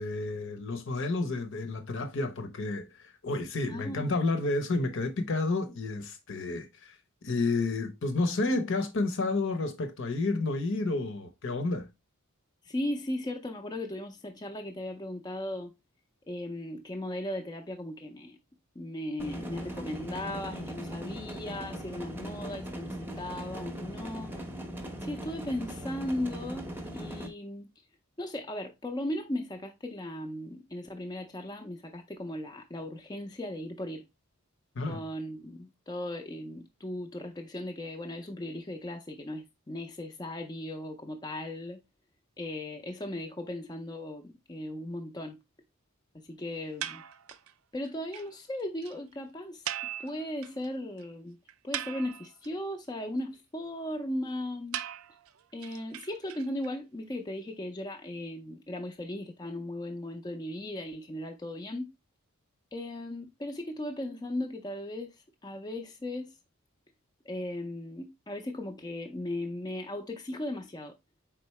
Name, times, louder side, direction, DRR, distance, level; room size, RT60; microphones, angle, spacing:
voice 1, 0.0-6.9 7.2-11.9 34.7-35.0, left 2 dB, 60° left, 0.8 m, -30 dB
voice 2, 3.7-4.2 12.6-15.7 16.3-18.4 18.8-24.3 25.0-27.7 28.2-34.0 34.9-41.8 42.4-45.4 46.1-47.0 47.7-49.6 50.0-51.4 51.6-54.8 55.5-61.9 62.7-66.3 67.2-70.9, left 1 dB, 20° left, 0.5 m, -37 dB
sound 1, 19.2-27.3, equal, 10° right, 0.7 m, -39 dB
sound 2, 46.8-47.5 47.9-48.0 48.1-48.3 48.5-48.6 48.8-48.9 49.7-50.7 51.0-51.1 51.5-52.5 54.7-56.7, right 11 dB, 65° right, 0.4 m, -39 dB
4.5 x 3.8 x 3.1 m
head